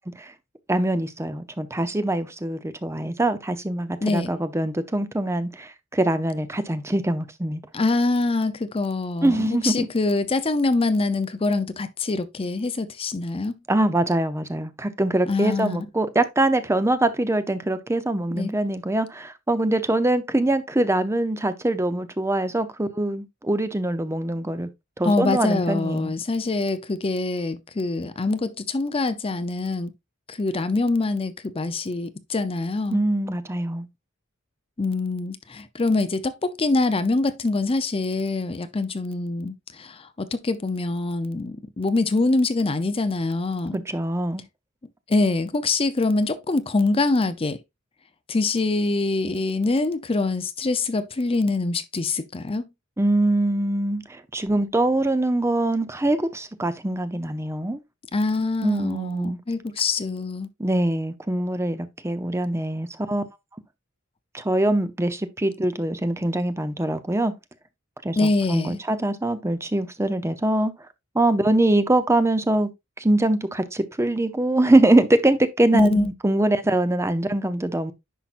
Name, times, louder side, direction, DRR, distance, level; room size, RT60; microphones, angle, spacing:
voice 1, 0.7-7.6 9.2-9.9 13.7-24.7 25.0-26.1 32.9-33.9 43.7-44.4 53.0-57.8 58.6-59.4 60.6-63.2 64.3-67.3 68.0-70.7 71.1-72.7 73.0-77.9, right 1 dB, 15° right, 0.7 m, -23 dB
voice 2, 4.0-4.3 7.7-13.6 15.3-15.8 18.3-18.5 25.0-29.9 30.3-33.0 34.8-43.8 45.1-47.6 48.3-52.7 58.1-60.5 68.2-68.8 75.7-76.1, left 3 dB, 25° left, 0.6 m, -24 dB
10.0 x 5.8 x 2.5 m
head